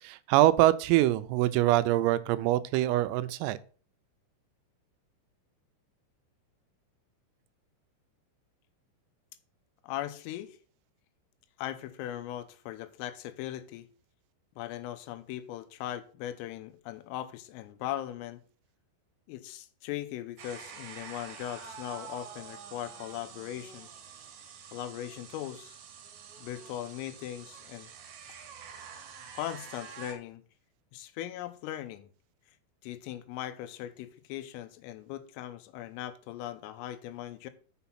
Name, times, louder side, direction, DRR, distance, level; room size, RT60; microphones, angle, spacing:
voice 1, 0.0-3.6, right 15 dB, 90° right, 3.3 m, -24 dB
voice 2, 9.8-10.6 11.6-13.9 14.6-18.4 19.3-23.9 24.7-25.8 26.4-27.9 29.3-30.4 30.9-32.1 32.8-37.5, left 12 dB, 85° left, 3.4 m, -39 dB
sound 1, 20.4-30.1, right 6 dB, 70° right, 3.4 m, -47 dB
7.0 x 6.2 x 5.7 m
omnidirectional pair, 5.9 m